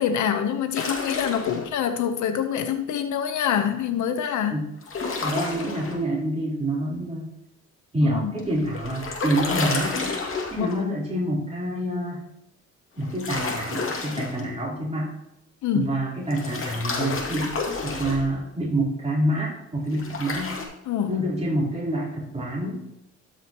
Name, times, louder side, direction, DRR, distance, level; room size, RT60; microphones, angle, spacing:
voice 1, 0.0-4.6 8.0-8.3 10.6-10.9 15.6-15.9 20.9-21.2, left 8 dB, 75° left, 8 dB, 0.9 m, -26 dB
sound 1, 0.7-1.7 4.8-5.9 8.4-10.8 13.0-14.4 16.3-18.3 19.9-20.6, left 3 dB, 45° left, 2.3 m, -30 dB
voice 2, 5.2-7.3 7.9-10.2 10.5-12.3 13.0-15.1 15.7-17.5 17.8-20.6 21.1-22.8, right 1 dB, 20° right, -6 dB, 3.7 m, -27 dB
13.0 x 6.0 x 3.0 m, 0.83 s
cardioid pair, 90°, 30 cm